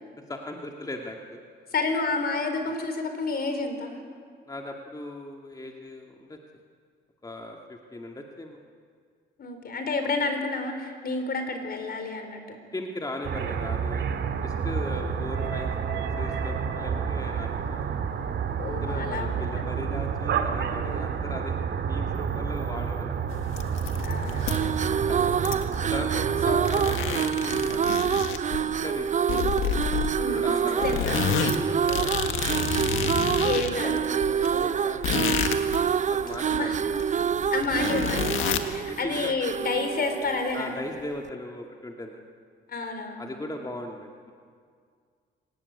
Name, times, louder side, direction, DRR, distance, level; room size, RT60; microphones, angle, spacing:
voice 1, 0.3-1.4 2.6-2.7 4.5-6.4 7.2-8.6 12.7-14.1 14.4-17.9 18.7-21.6 21.9-23.3 24.0-24.8 25.1-25.4 25.8-27.8 28.6-29.3 30.2-32.9 33.7-37.0 38.4-39.3 40.5-42.2 43.2-44.3, left 1 dB, 20° left, 2 dB, 2.2 m, -38 dB
voice 2, 1.7-3.9 9.4-12.6 18.6-19.7 24.0-24.5 26.4-26.6 30.2-30.5 30.8-31.2 33.4-33.9 36.5-36.8 37.5-40.7 42.7-43.4, left 3 dB, 50° left, 6 dB, 4.4 m, -30 dB
sound 1, 13.2-27.2, right 7 dB, 65° right, 2.1 m, -29 dB
sound 2, 23.4-24.9 25.2-26.4 26.6-28.8 29.3-30.4 30.8-35.8 36.2-38.8, left 8 dB, 85° left, 1.8 m, -30 dB
sound 3, 24.4-40.8, right 7 dB, 40° right, 0.6 m, -27 dB
26.5 x 17.0 x 9.7 m, 2.1 s
cardioid pair, 90°, 20 cm